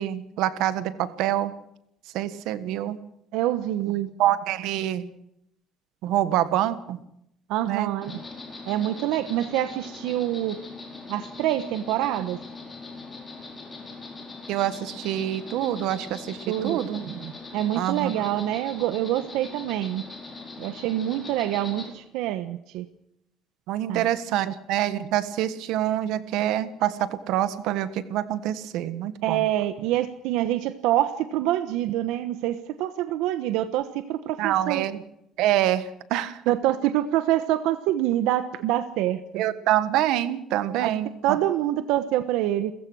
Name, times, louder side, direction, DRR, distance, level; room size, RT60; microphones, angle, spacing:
voice 1, 0.0-1.5 2.1-3.0 4.2-5.1 6.0-7.0 7.7-8.2 14.5-17.3 17.7-18.1 23.7-29.4 34.4-35.0 35.4-36.4 39.3-41.4, right 12 dB, 65° right, 13 dB, 1.4 m, -26 dB
voice 2, 3.3-4.1 7.5-8.1 8.7-10.6 11.1-12.4 16.5-16.8 17.5-20.0 20.6-22.9 23.9-24.1 29.2-34.8 36.5-39.4 40.8-40.9 41.2-42.7, right 13 dB, 85° right, 11 dB, 1.1 m, -26 dB
Insect, 8.0-21.9, left 3 dB, 15° left, 4.5 m, -41 dB
29.5 x 15.5 x 6.3 m, 0.76 s
cardioid pair, 180°, 0 cm